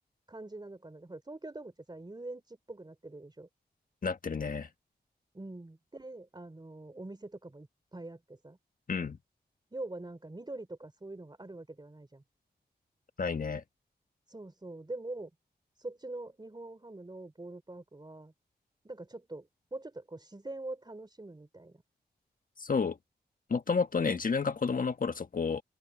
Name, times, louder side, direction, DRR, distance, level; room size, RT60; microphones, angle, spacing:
voice 1, 0.3-3.5 5.3-8.6 9.7-12.2 14.3-15.3 15.8-18.3 18.8-21.8, right 2 dB, 25° right, 3.4 m, -44 dB
voice 2, 4.0-4.7 8.9-9.2 13.2-13.6 22.6-23.0 23.5-25.6, left 5 dB, 55° left, 1.4 m, -30 dB
open air
cardioid pair, 55°, 17 cm